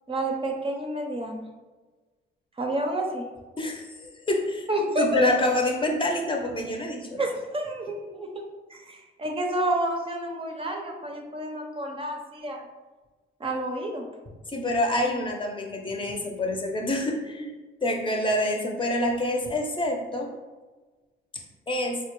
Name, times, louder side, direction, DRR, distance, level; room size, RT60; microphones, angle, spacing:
voice 1, 0.1-1.4 2.6-3.2 4.7-5.3 7.2-8.4 8.7-12.6 13.4-14.1, right 1 dB, 25° right, 2 dB, 0.6 m, -29 dB
voice 2, 3.6-4.7 5.0-7.2 14.5-17.5 17.8-20.3 21.3-22.0, left 1 dB, 25° left, 1 dB, 0.7 m, -27 dB
4.2 x 2.2 x 3.0 m, 1.3 s
cardioid pair, 90°, 20 cm